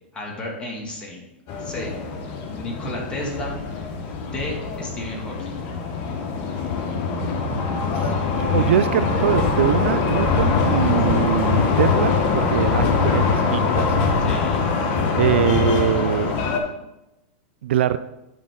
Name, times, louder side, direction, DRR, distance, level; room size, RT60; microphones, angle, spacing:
voice 1, 0.1-1.2 1.6-1.9 2.6-3.6 4.2-5.5 14.3-14.7, left 1 dB, 15° left, -2 dB, 2.1 m, -32 dB
sound 1, 1.5-16.6, left 5 dB, 40° left, 1.1 m, -22 dB
voice 2, 8.0-13.9 15.1-16.4 17.6-18.0, right 10 dB, 75° right, 14 dB, 0.4 m, -23 dB
10.5 x 5.0 x 3.7 m, 0.95 s
hypercardioid pair, 135°, 6 cm